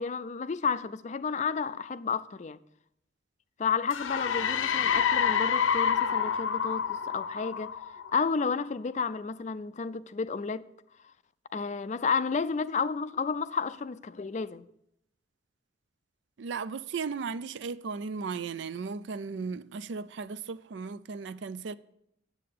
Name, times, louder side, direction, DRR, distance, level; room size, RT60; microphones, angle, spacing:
voice 1, 0.0-2.6 3.6-7.7 8.1-10.7 11.5-14.7, left 5 dB, 35° left, 0.3 m, -31 dB
sound 1, 3.9-8.5, left 7 dB, 85° left, 0.6 m, -28 dB
voice 2, 16.4-21.7, right 5 dB, 65° right, 0.4 m, -36 dB
9.6 x 7.6 x 6.7 m
head